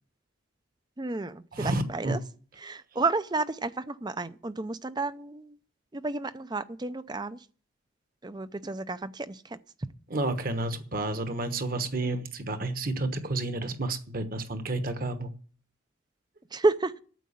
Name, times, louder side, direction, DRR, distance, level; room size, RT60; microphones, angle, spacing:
voice 1, 1.0-2.2 2.6-5.6 5.9-7.5 8.2-9.6 12.0-12.1 16.5-17.0, right 3 dB, 20° right, 14 dB, 0.5 m, -31 dB
voice 2, 1.5-2.2 10.1-15.3, right 2 dB, 45° right, 8 dB, 1.2 m, -30 dB
9.2 x 7.5 x 8.5 m, 0.43 s
head